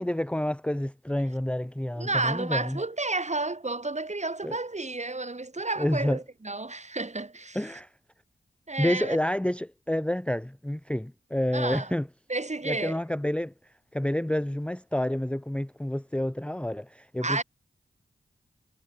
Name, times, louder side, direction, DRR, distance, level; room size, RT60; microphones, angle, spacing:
voice 1, 0.0-2.8 4.4-4.6 5.8-6.2 7.5-7.9 8.8-12.1 12.6-13.5 13.9-17.4, left 1 dB, 5° left, 1.0 m, -29 dB
voice 2, 2.0-7.8 8.7-9.2 11.5-11.9 12.3-13.0 17.2-17.4, right 2 dB, 35° right, 6.0 m, -31 dB
cardioid pair, 55°, 20 cm